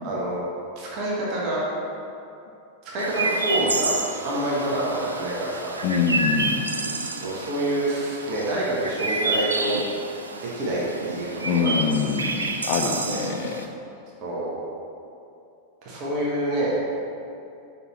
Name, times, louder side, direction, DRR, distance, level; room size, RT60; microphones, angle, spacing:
voice 1, 0.0-0.4 0.8-1.6 2.8-4.0 4.2-5.8 7.2-9.8 10.4-10.8 11.1-11.7 12.8-13.3 14.2-14.5 15.8-16.9, right 1 dB, 40° right, -6 dB, 1.2 m, -27 dB
Chirp tweet, 3.0-13.7, right 3 dB, 75° right, 0.4 m, -29 dB
voice 2, 5.8-6.7 11.4-13.7, left 6 dB, 45° left, 7 dB, 0.4 m, -25 dB
5.3 x 4.3 x 4.2 m, 2.6 s
figure-of-eight pair, 90°, 0 cm